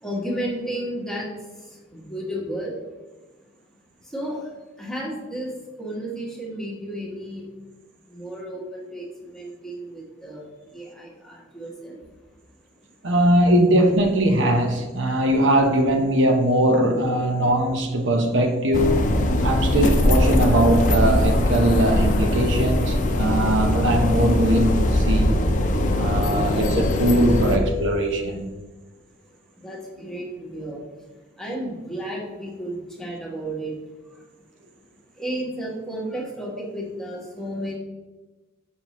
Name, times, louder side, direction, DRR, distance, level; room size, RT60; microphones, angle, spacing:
voice 1, 0.0-1.3 1.9-2.7 4.1-4.4 4.8-5.5 5.8-7.4 8.1-10.4 10.7-12.0 20.4-20.6 29.6-30.8 31.4-33.7 35.2-37.8, right 1 dB, 5° left, -3 dB, 1.4 m, -32 dB
voice 2, 13.0-19.0 19.4-25.3 26.0-28.5, right 1 dB, 70° right, 3 dB, 0.8 m, -20 dB
road sweeper, 18.7-27.6, left 1 dB, 45° left, 0.6 m, -21 dB
5.9 x 5.7 x 3.0 m, 1.2 s
head